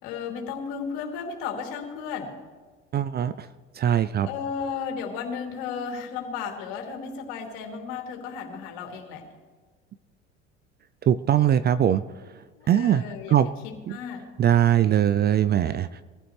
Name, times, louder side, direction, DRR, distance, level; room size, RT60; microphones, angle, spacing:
voice 1, 0.0-2.3 4.2-9.2 12.6-13.4 13.6-14.3, left 6 dB, 60° left, 2 dB, 3.0 m, -34 dB
voice 2, 2.9-3.5 3.8-4.3 11.1-12.0 12.7-13.0 13.3-13.5 13.9-14.0 14.4-16.0, right 10 dB, 30° right, 14 dB, 0.4 m, -21 dB
23.5 x 15.0 x 3.3 m, 1.4 s
hypercardioid pair, 70°, 36 cm